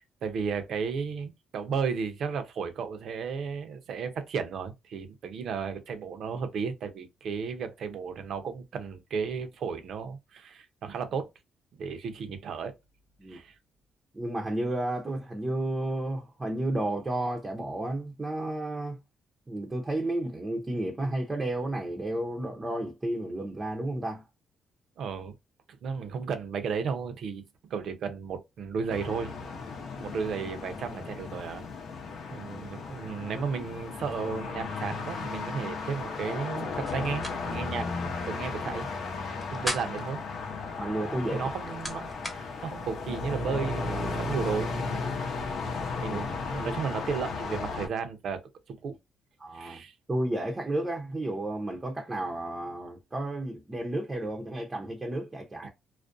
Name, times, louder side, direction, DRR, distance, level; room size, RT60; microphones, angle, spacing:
voice 1, 0.2-11.3 11.7-12.7 13.3-13.6 25.0-25.3 25.8-27.4 27.7-29.3 30.0-31.6 32.3-38.9 39.5-40.2 41.3-45.2 46.0-48.4 48.7-49.0 49.5-49.9, right 6 dB, 65° right, 0.5 m, -34 dB
voice 2, 14.1-19.0 19.5-24.2 40.8-41.5 44.2-44.4 46.1-46.8 49.4-49.8 50.1-55.7, right 1 dB, 20° right, 0.6 m, -32 dB
sound 1, 28.9-47.9, left 4 dB, 65° left, 0.7 m, -35 dB
sound 2, 36.9-37.4 37.7-37.8 39.3-40.1 41.2-42.4, equal, 5° left, 0.9 m, -36 dB
2.4 x 2.1 x 2.5 m
cardioid pair, 90°, 0 cm